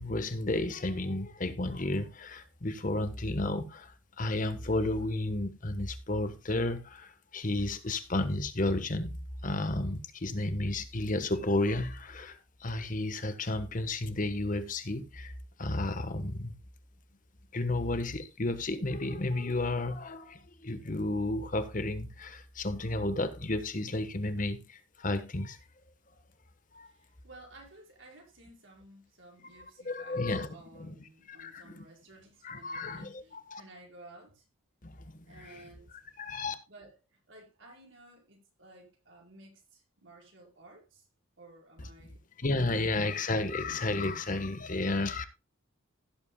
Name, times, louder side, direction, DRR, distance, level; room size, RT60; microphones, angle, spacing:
voice 1, 0.0-15.3 15.6-16.5 17.5-25.6 26.7-26.9 29.8-30.9 31.3-31.9 32.4-33.1 33.5-33.6 34.8-35.4 36.2-36.5 42.4-45.2, left 2 dB, 40° left, 1.2 m, -32 dB
voice 2, 26.8-30.2 30.5-34.4 35.3-35.9 36.7-41.1 41.4-42.2, right 1 dB, 65° right, 5.1 m, -54 dB
16.5 x 8.3 x 2.2 m
head